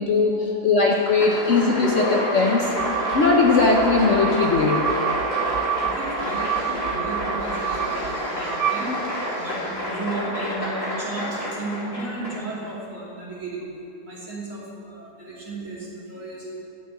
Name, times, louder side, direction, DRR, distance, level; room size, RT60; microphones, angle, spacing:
voice 1, 0.0-2.7 3.1-4.8, left 4 dB, 55° left, 0 dB, 1.0 m, -19 dB
Applause, 0.8-12.7, left 1 dB, 35° left, 2.7 m, -29 dB
sound 1, 2.8-9.5, right 11 dB, 70° right, 0.9 m, -29 dB
voice 2, 5.6-13.6 14.0-16.7, right 2 dB, 45° right, -7 dB, 3.2 m, -34 dB
12.5 x 6.0 x 8.6 m, 2.8 s
omnidirectional pair, 1.8 m